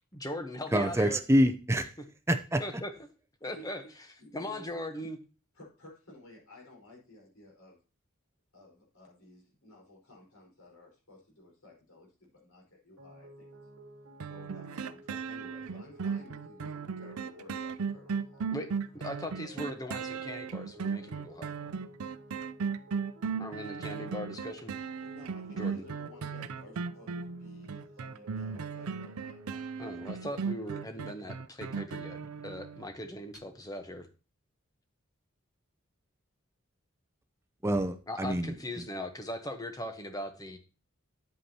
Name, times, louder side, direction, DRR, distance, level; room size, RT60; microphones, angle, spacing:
voice 1, 0.1-1.2 2.6-2.9 3.4-3.8 4.3-5.2 18.5-21.5 23.4-24.7 25.5-25.8 29.8-34.1 38.1-40.6, left 1 dB, 15° left, 7 dB, 1.0 m, -39 dB
voice 2, 0.7-1.9 2.3-2.6 37.6-38.8, equal, 10° right, 9 dB, 0.6 m, -27 dB
voice 3, 3.5-3.9 4.2-4.8 5.5-7.8 8.5-13.5 14.2-18.5 19.9-20.2 25.0-29.6, left 1 dB, 85° left, -1 dB, 4.8 m, -54 dB
sound 1, 13.0-30.1, right 1 dB, 65° right, 1.5 m, -54 dB
sound 2, 14.2-32.9 33.3-33.4, right 5 dB, 90° right, 0.5 m, -36 dB
9.4 x 8.3 x 2.9 m, 0.34 s
head